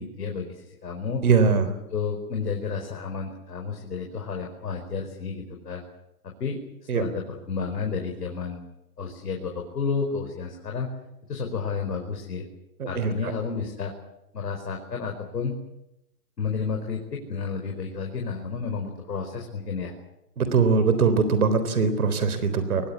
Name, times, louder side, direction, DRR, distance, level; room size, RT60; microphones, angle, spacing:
voice 1, 0.0-1.2 1.6-5.8 6.4-6.6 6.9-8.6 9.0-10.9 11.3-12.4 12.8-13.9 14.3-15.6 16.4-19.9, left 5 dB, 90° left, 2 dB, 5.0 m, -31 dB
voice 2, 1.2-1.7 6.9-7.0 12.8-13.3 20.4-22.8, right 5 dB, 65° right, 11 dB, 3.8 m, -22 dB
24.0 x 20.0 x 8.5 m, 0.90 s
hypercardioid pair, 175°, 46 cm